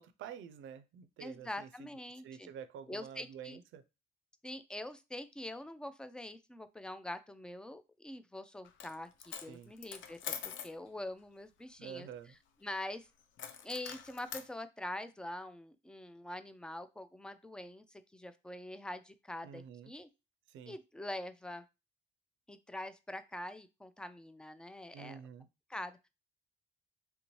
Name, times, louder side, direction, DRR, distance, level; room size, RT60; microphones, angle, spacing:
voice 1, 0.0-1.7 2.2-3.8 9.5-9.7 11.8-12.4 19.4-19.9 20.5-20.8 24.9-25.5, right 8 dB, 80° right, 12 dB, 0.5 m, -48 dB
voice 2, 1.2-2.5 2.9-3.6 4.4-10.3 10.6-12.1 12.6-13.1 13.6-20.1 20.7-21.6 22.5-25.2 25.7-26.1, left 1 dB, 5° left, 12 dB, 0.3 m, -44 dB
Coin (dropping), 8.6-8.9 9.2-10.7 13.4-14.5, left 8 dB, 75° left, 0.5 m, -44 dB
3.4 x 2.7 x 3.0 m, 0.26 s
cardioid pair, 90°, 20 cm